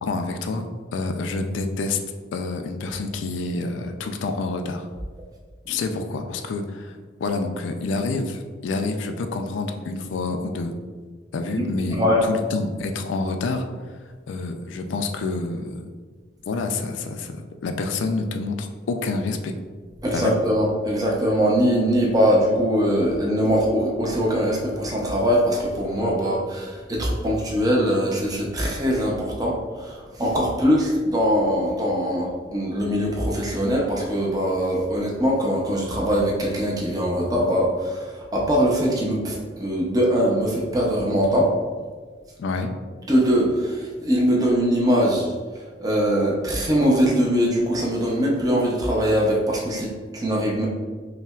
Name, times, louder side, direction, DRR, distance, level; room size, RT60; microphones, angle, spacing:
voice 1, 0.0-2.0 2.3-4.9 5.7-10.7 11.3-13.7 14.3-15.8 16.5-19.6 20.1-20.4 42.4-42.7, left 3 dB, 85° left, 6 dB, 0.3 m, -28 dB
voice 2, 11.6-12.2 20.0-41.5 43.1-45.3 45.8-50.7, equal, 20° right, -3 dB, 0.5 m, -22 dB
5.5 x 2.1 x 2.3 m, 1.5 s
head